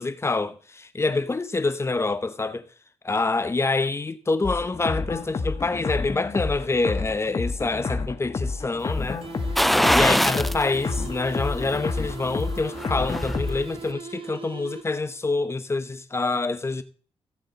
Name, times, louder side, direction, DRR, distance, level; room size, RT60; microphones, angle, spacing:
voice 1, 0.0-2.7 3.0-9.2 9.9-16.8, left 3 dB, 25° left, 0.9 m, -26 dB
sound 1, 4.4-13.6, left 4 dB, 40° left, 1.6 m, -30 dB
sound 2, 9.2-15.2, right 4 dB, 55° right, 1.1 m, -39 dB
sound 3, 9.6-10.6 11.0-11.1 12.6-13.4 13.8-13.9, equal, ahead, 0.4 m, -21 dB
15.5 x 7.6 x 4.1 m
cardioid pair, 90°, 11 cm